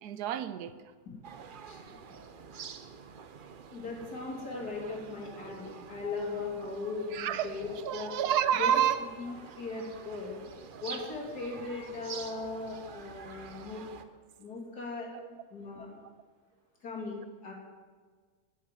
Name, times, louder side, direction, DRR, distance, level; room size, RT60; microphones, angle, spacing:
voice 1, 0.0-0.7 7.1-7.5 7.8-9.0 15.1-15.4, right 10 dB, 90° right, 1.2 m, -29 dB
sound 1, 1.2-14.0, right 6 dB, 50° right, 0.6 m, -47 dB
voice 2, 3.7-8.1 8.6-8.8 9.2-10.4 10.8-13.8 14.4-15.1 15.5-16.0 16.8-17.5, left 3 dB, 80° left, 3.2 m, -38 dB
12.5 x 6.5 x 9.0 m
omnidirectional pair, 1.6 m